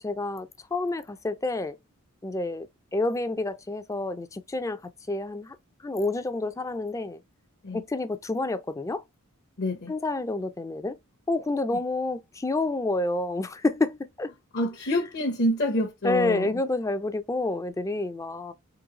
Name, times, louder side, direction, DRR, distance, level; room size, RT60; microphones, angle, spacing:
voice 1, 0.0-1.8 2.2-2.7 2.9-4.8 5.1-5.6 5.8-7.2 7.7-9.0 9.9-11.0 11.3-14.3 15.0-15.1 16.0-18.5, left 2 dB, 15° left, 0.3 m, -29 dB
voice 2, 9.6-9.9 14.5-16.5, left 1 dB, 50° left, 0.7 m, -27 dB
3.9 x 2.7 x 2.8 m
head